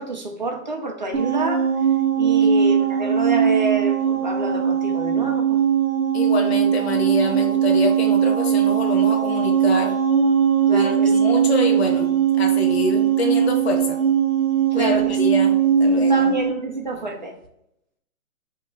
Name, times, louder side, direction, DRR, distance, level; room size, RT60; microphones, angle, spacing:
voice 1, 0.0-1.7 2.2-5.6 10.7-11.4 12.9-13.0 14.7-15.2 16.0-17.3, right 2 dB, 35° right, 1 dB, 0.5 m, -28 dB
sound 1, 1.1-16.5, right 8 dB, 60° right, 0.9 m, -19 dB
voice 2, 6.1-10.0 10.7-14.0 14.7-16.2, left 3 dB, 50° left, 2 dB, 0.7 m, -27 dB
3.0 x 2.9 x 3.6 m, 0.78 s
hypercardioid pair, 170°, 42 cm